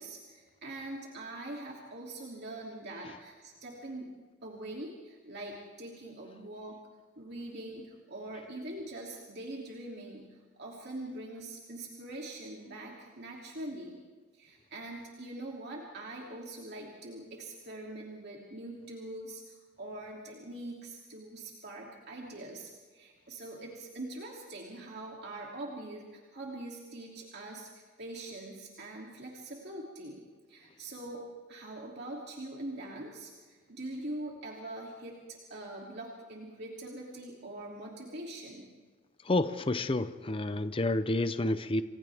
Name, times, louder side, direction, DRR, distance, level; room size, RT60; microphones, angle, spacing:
voice 1, 0.0-4.1 4.4-6.8 7.2-14.0 14.3-30.2 30.5-38.7, right 1 dB, 50° right, -2 dB, 2.9 m, -43 dB
voice 2, 39.2-41.8, left 2 dB, 25° left, 11 dB, 0.6 m, -29 dB
29.5 x 26.5 x 3.6 m, 1.4 s
head